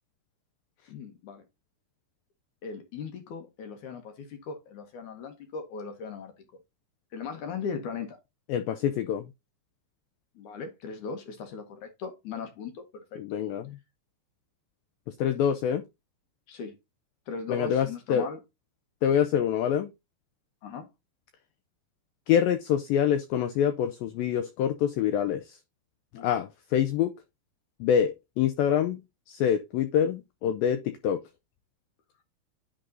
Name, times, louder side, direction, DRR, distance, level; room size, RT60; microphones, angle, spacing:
voice 1, 0.9-1.4 2.6-6.4 7.1-8.2 10.4-13.4 16.5-16.8 17.3-18.4 20.6-20.9 26.1-26.4, left 5 dB, 70° left, 1.9 m, -38 dB
voice 2, 8.5-9.3 13.2-13.7 15.1-15.8 17.5-18.3 19.0-19.9 22.3-25.6 26.2-27.1 27.8-29.0 29.3-31.2, left 9 dB, 85° left, 2.0 m, -26 dB
10.5 x 3.8 x 3.8 m
omnidirectional pair, 4.8 m